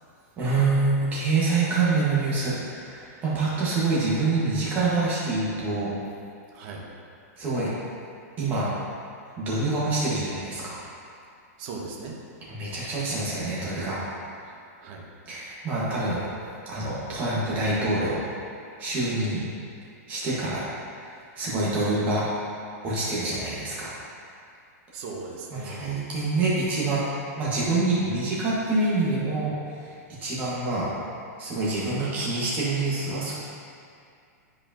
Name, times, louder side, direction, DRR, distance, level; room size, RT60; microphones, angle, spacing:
voice 1, 0.4-5.9 7.4-7.7 8.4-8.7 9.4-10.8 12.5-14.0 15.3-16.2 16.6-18.2 18.8-19.4 20.1-20.6 21.4-22.2 22.8-23.9 25.5-27.0 27.4-29.9 30.2-30.9 31.4-33.4, right 3 dB, 20° right, -8 dB, 1.5 m, -26 dB
voice 2, 6.5-6.8 11.6-12.2 14.4-15.1 15.3-15.4 21.7-21.9 24.9-25.9, right 4 dB, 35° right, -2 dB, 0.9 m, -39 dB
10.0 x 4.8 x 2.9 m, 2.4 s
supercardioid pair, 175°, 9 cm